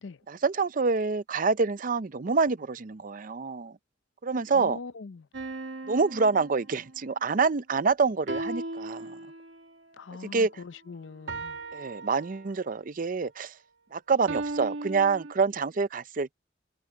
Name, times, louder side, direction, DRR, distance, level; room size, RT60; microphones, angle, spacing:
voice 1, 0.3-3.8 4.2-4.8 5.9-9.2 10.3-10.6 11.7-13.5 13.9-16.3, right 4 dB, 45° right, 0.6 m, -27 dB
voice 2, 4.5-5.3 10.0-11.6, left 4 dB, 80° left, 0.6 m, -42 dB
sound 1, 5.3-7.1 8.3-9.7 11.3-12.8 14.3-15.3, right 2 dB, 85° right, 2.2 m, -37 dB
head